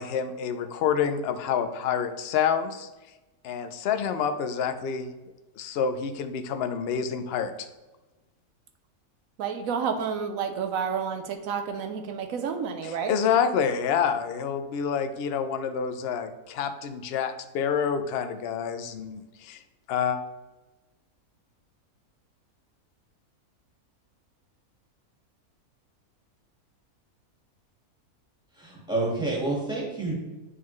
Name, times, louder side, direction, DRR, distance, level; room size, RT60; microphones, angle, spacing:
voice 1, 0.0-2.9 3.4-5.1 5.6-7.7 12.8-19.6 19.9-20.2, left 7 dB, 70° left, 9 dB, 0.6 m, -28 dB
voice 2, 9.4-13.1, right 6 dB, 70° right, 7 dB, 1.1 m, -30 dB
voice 3, 28.6-30.1, right 2 dB, 5° right, -5 dB, 1.6 m, -28 dB
9.5 x 3.7 x 3.1 m, 1.1 s
omnidirectional pair, 1.6 m